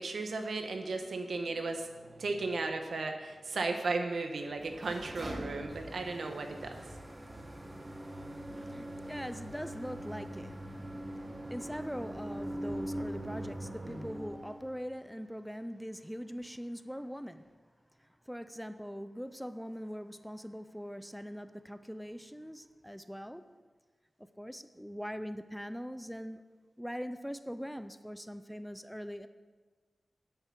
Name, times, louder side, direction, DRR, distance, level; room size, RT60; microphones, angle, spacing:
voice 1, 0.0-6.8, right 3 dB, 85° right, 5 dB, 1.2 m, -35 dB
sound 1, 4.5-14.8, right 1 dB, 25° right, 1.1 m, -42 dB
voice 2, 8.0-17.4 18.0-23.4 24.4-26.4 26.8-29.3, equal, ahead, 11 dB, 0.4 m, -42 dB
9.9 x 8.2 x 5.9 m, 1.4 s
wide cardioid pair, 115°, 0 cm